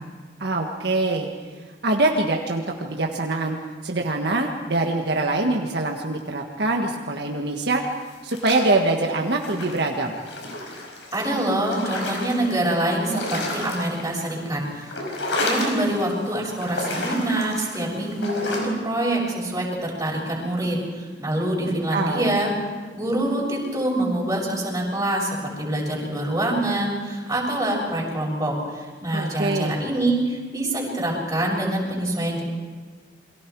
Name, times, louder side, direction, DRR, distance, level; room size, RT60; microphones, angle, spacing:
voice 1, 0.4-1.3 1.8-3.6 3.8-7.8 8.2-10.1 21.6-22.3 29.1-29.8, right 2 dB, 65° right, 1 dB, 1.7 m, -24 dB
sound 1, 8.1-9.0 9.4-12.7 13.0-14.4 14.7-16.1 16.5-18.6, left 2 dB, 90° left, 5.4 m, -31 dB
voice 2, 11.1-14.9 15.4-22.5 22.9-25.3 25.6-32.4, right 1 dB, 20° right, -3 dB, 7.0 m, -25 dB
29.0 x 23.5 x 4.8 m, 1.4 s
head